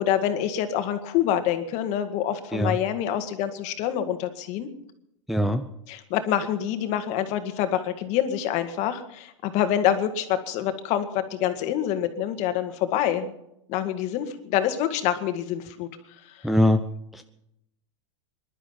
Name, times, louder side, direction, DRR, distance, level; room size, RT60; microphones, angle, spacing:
voice 1, 0.0-4.7 5.9-13.3 13.7-15.9 16.3-16.5, left 10 dB, 45° left, 8 dB, 2.0 m, -26 dB
voice 2, 5.3-5.6 16.4-16.8 17.1-17.2, left 1 dB, ahead, 6 dB, 0.7 m, -21 dB
21.0 x 12.0 x 5.8 m, 0.80 s
hypercardioid pair, 130°, 17 cm